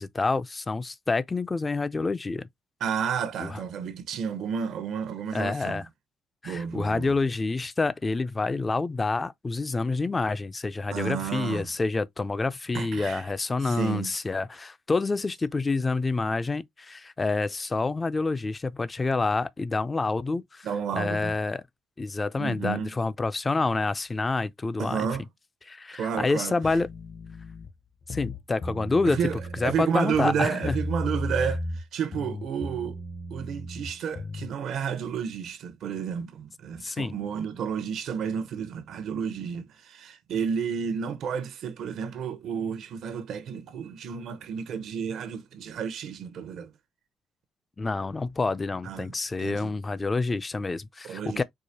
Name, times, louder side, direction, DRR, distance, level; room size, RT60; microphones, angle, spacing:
voice 1, 0.0-2.4 3.4-3.6 5.3-5.8 6.4-20.7 20.9-21.6 22.0-25.1 25.7-26.9 28.1-29.2 29.6-30.8 36.8-37.2 47.8-51.4, left 3 dB, 25° left, 0.4 m, -28 dB
voice 2, 2.8-5.9 6.4-7.1 10.9-11.7 12.7-13.3 13.6-14.1 20.6-21.4 22.4-22.9 24.8-25.2 26.0-26.6 29.1-33.0 33.3-46.7 48.8-49.1 49.4-49.7 51.0-51.4, right 7 dB, 75° right, 0.7 m, -31 dB
sound 1, 26.6-27.7 28.0-29.8 30.1-31.9 32.1-34.5, left 1 dB, 50° left, 0.9 m, -35 dB
4.7 x 2.4 x 2.7 m
cardioid pair, 90°, 0 cm